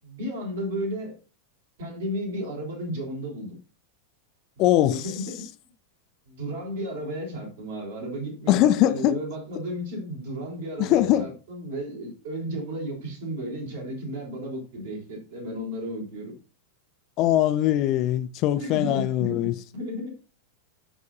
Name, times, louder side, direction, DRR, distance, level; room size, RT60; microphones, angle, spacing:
voice 1, 0.0-1.2 1.8-3.6 4.6-5.5 6.3-16.3 18.6-20.1, equal, 55° right, 4.0 m, -33 dB
voice 2, 4.6-5.0 8.5-9.2 10.8-11.3 17.2-19.5, left 13 dB, 40° left, 0.5 m, -21 dB
14.0 x 4.7 x 2.6 m
figure-of-eight pair, 90°, 0 cm